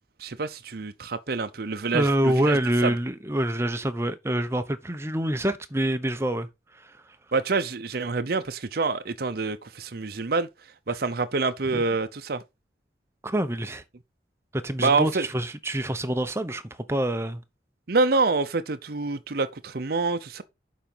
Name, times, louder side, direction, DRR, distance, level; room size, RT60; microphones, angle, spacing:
voice 1, 0.2-2.6 2.8-2.9 7.3-10.5 10.9-12.4 14.8-15.3 17.9-20.4, right 3 dB, 55° right, 0.7 m, -26 dB
voice 2, 1.9-6.5 6.7-7.0 11.7-11.8 13.2-13.8 14.5-16.6 16.9-17.4, right 1 dB, 15° right, 0.8 m, -26 dB
7.4 x 5.1 x 5.4 m
head